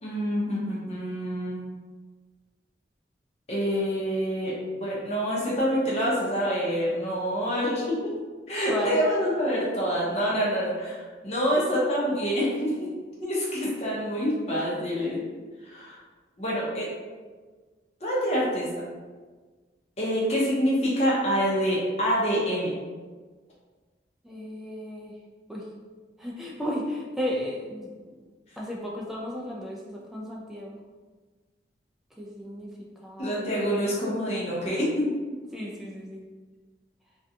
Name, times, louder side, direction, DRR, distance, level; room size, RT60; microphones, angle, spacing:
voice 1, 0.0-1.7 3.5-4.5 4.8-8.0 8.5-12.9 13.2-15.2 15.6-16.0 16.4-16.9 18.0-18.7 20.0-22.8 33.2-35.1, equal, 35° left, -6 dB, 0.7 m, -26 dB
voice 2, 8.7-9.0 24.2-25.1 25.5-25.7 26.2-28.2 28.6-30.8 32.2-32.7 33.0-34.0 35.5-36.2, equal, ahead, -3 dB, 0.3 m, -34 dB
2.4 x 2.2 x 2.6 m, 1.4 s
head